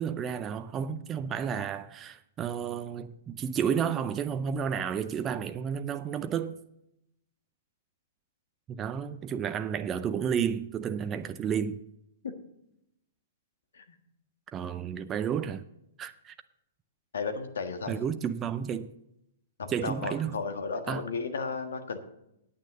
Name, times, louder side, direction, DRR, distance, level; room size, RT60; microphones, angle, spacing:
voice 1, 0.0-6.6 8.7-11.8 14.5-15.6 16.0-16.3 17.9-18.9 19.7-20.4 20.9-21.1, right 8 dB, 25° right, 0.5 m, -31 dB
voice 2, 17.1-18.0 19.6-22.0, left 4 dB, 75° left, 1.4 m, -34 dB
9.0 x 8.6 x 6.7 m
hypercardioid pair, 115°, 0 cm